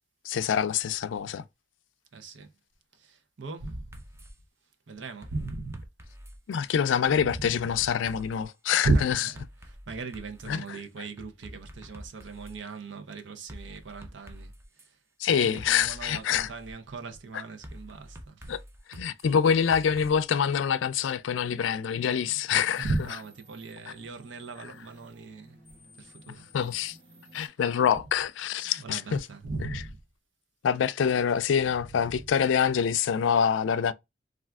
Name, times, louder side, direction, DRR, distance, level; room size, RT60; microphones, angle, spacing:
voice 1, 0.2-1.4 6.5-8.9 15.2-16.5 18.5-18.6 18.9-22.9 26.5-27.0 27.3-29.2 30.6-33.9, left 7 dB, 85° left, 0.3 m, -25 dB
voice 2, 2.1-2.6 2.9-4.3 4.9-5.8 7.1-7.6 8.8-18.5 19.9-20.1 22.2-25.7 26.0-26.5 28.5-30.0 31.8-32.3, right 3 dB, 80° right, 0.6 m, -36 dB
sound 1, 3.7-4.3 5.2-6.7 7.3-8.5 9.3-10.7 11.2-12.6 13.5-14.9 15.6-16.7 17.6-20.1, equal, 15° right, 0.4 m, -46 dB
sound 2, 22.5-27.5, equal, 45° right, 1.9 m, -56 dB
3.4 x 2.4 x 2.3 m
head